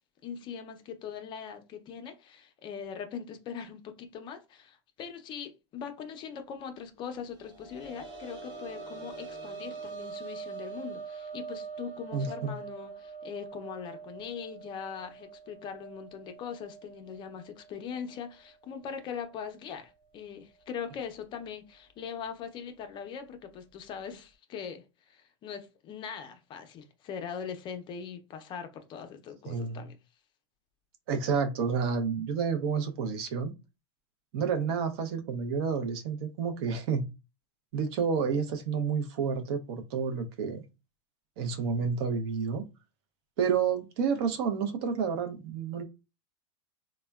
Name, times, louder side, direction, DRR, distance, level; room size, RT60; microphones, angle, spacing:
voice 1, 0.2-30.0, left 7 dB, 30° left, 0.5 m, -41 dB
sound 1, 7.2-18.6 19.0-19.1 20.6-20.7, right 5 dB, 35° right, 1.2 m, -44 dB
voice 2, 12.1-12.6 29.5-29.9 31.1-33.5 34.3-37.1 37.7-40.6 41.4-42.6 43.4-45.8, right 6 dB, 60° right, 0.6 m, -30 dB
3.4 x 2.1 x 2.2 m
supercardioid pair, 125°, 15 cm